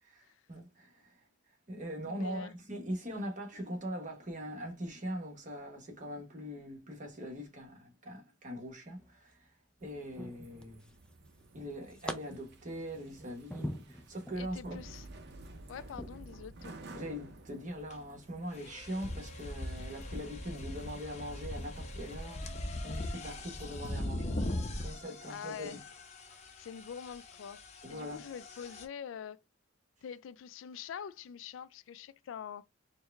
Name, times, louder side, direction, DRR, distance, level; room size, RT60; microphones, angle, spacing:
voice 1, 0.0-1.2 1.7-9.5 9.8-10.8 11.5-14.8 16.9-24.4 24.8-25.8 26.3-26.4 27.8-28.2, equal, 40° right, 1.1 m, -42 dB
voice 2, 2.1-2.5 14.4-15.1 15.7-17.0 25.3-25.8 26.6-29.4 30.0-32.7, left 7 dB, 85° left, 0.3 m, -45 dB
sound 1, 9.0-9.5 10.2-11.1 11.4-12.1 12.6-14.4 14.9-15.2 15.9-16.1, equal, 5° left, 0.4 m, -43 dB
sound 2, 9.8-24.0, right 2 dB, 60° right, 0.6 m, -53 dB
sound 3, 17.9-18.0 18.5-28.9, left 1 dB, 35° left, 0.6 m, -40 dB
4.6 x 2.2 x 3.3 m
head